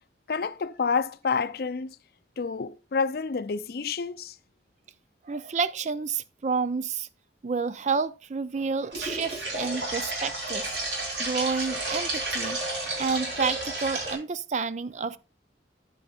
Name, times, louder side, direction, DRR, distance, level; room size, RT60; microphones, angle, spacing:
voice 1, 0.3-1.9 2.4-4.4, left 5 dB, 55° left, 0.5 m, -28 dB
voice 2, 5.2-7.1 7.4-12.6 13.0-15.2, right 5 dB, 40° right, 0.4 m, -30 dB
sound 1, 8.9-14.1, right 2 dB, 85° right, 4.3 m, -31 dB
9.8 x 9.1 x 2.4 m
head